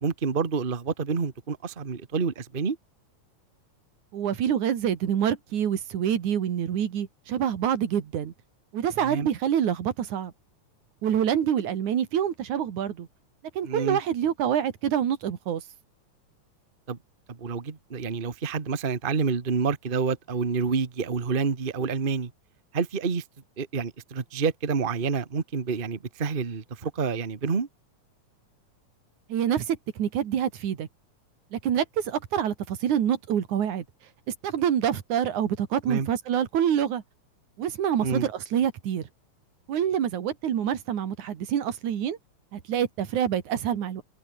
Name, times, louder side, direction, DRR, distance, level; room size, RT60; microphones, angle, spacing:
voice 1, 0.0-2.8 9.0-9.3 13.6-14.0 16.9-17.0 17.3-22.3 22.7-23.2 23.6-27.7 35.9-36.1 38.0-38.3, right 5 dB, 30° right, 1.1 m, -28 dB
voice 2, 4.1-8.3 8.7-10.3 11.0-13.1 13.6-15.6 29.3-30.9 31.5-33.9 34.4-37.0 37.6-39.1 39.7-42.2 42.5-44.0, right 9 dB, 90° right, 3.5 m, -26 dB
omnidirectional pair, 3.3 m